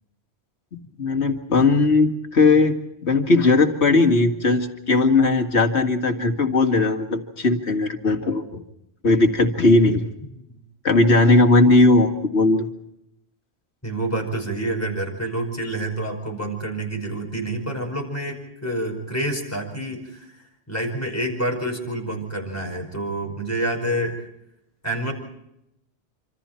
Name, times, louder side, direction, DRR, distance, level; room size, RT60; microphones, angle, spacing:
voice 1, 0.7-2.8 3.0-8.6 9.0-10.1 10.8-12.7, left 2 dB, 80° left, 5 dB, 2.3 m, -18 dB
voice 2, 13.8-20.4 20.7-24.3 24.8-25.1, right 1 dB, 15° left, 2 dB, 5.3 m, -28 dB
27.0 x 26.0 x 4.4 m, 0.83 s
omnidirectional pair, 1.1 m